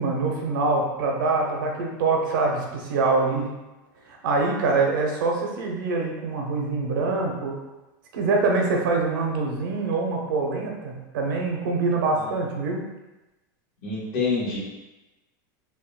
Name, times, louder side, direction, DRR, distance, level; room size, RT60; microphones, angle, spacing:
voice 1, 0.0-3.5 4.1-7.6 8.1-12.8, right 3 dB, 85° right, 0 dB, 0.7 m, -24 dB
voice 2, 13.8-14.6, left 4 dB, 55° left, -6 dB, 1.3 m, -26 dB
3.5 x 2.2 x 2.3 m, 1.1 s
supercardioid pair, 160°, 10 cm